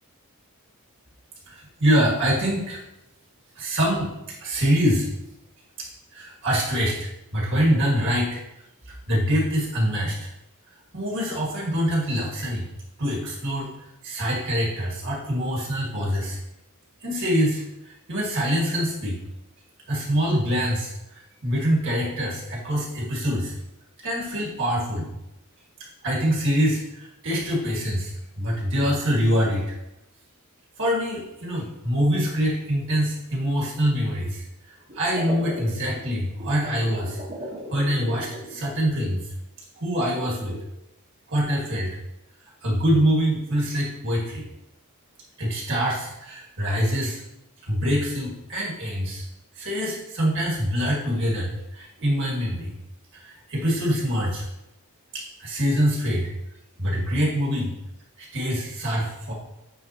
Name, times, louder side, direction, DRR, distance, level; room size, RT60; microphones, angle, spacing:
voice 1, 1.5-2.8 3.5-4.1 4.4-5.1 5.8-8.4 9.1-10.3 10.9-12.7 13.0-13.7 14.0-16.4 17.0-19.2 19.9-23.5 24.0-25.1 26.0-29.7 30.8-34.5 34.9-37.2 37.7-39.3 39.8-40.5 41.3-42.0 42.6-44.5 45.4-47.2 47.6-49.2 49.5-52.7 53.1-54.4 55.1-56.3 56.8-57.7 58.2-59.3, equal, 55° right, -4 dB, 1.9 m, -25 dB
sound 1, 34.9-39.1 40.0-40.6, equal, 35° right, 1.2 m, -37 dB
8.9 x 3.8 x 2.9 m, 0.88 s
head